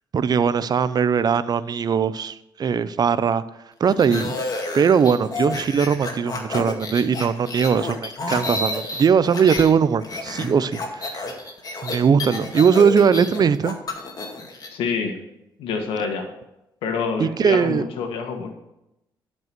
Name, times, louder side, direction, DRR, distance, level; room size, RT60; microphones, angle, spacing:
voice 1, 0.1-3.4 3.8-4.4 4.7-11.2 11.8-13.8 17.2-17.9, right 6 dB, 50° right, 0.7 m, -20 dB
sound 1, 3.9-9.7 10.0-14.7, left 2 dB, 45° left, 2.2 m, -30 dB
voice 2, 14.7-15.2 15.6-16.3 16.8-18.5, left 5 dB, 85° left, 1.8 m, -26 dB
12.0 x 5.4 x 6.1 m
cardioid pair, 70°, 9 cm